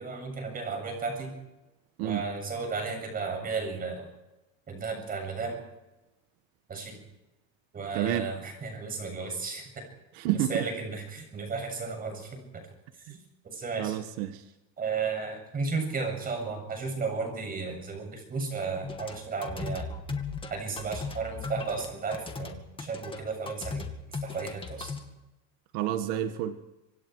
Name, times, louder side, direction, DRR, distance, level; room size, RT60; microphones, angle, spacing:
voice 1, 0.0-1.3 2.0-4.1 4.7-5.6 6.7-7.0 7.7-9.8 10.5-12.6 13.1-13.2 13.4-14.0 14.8-19.9 20.5-23.9 24.2-24.9, right 4 dB, 25° right, 4 dB, 7.7 m, -34 dB
voice 2, 7.9-8.3 10.1-10.6 13.8-14.4 25.7-26.6, right 12 dB, 80° right, 8 dB, 1.6 m, -29 dB
sound 1, 18.8-25.0, left 4 dB, 15° left, 2.2 m, -37 dB
26.5 x 26.0 x 4.8 m, 1.0 s
cardioid pair, 155°, 33 cm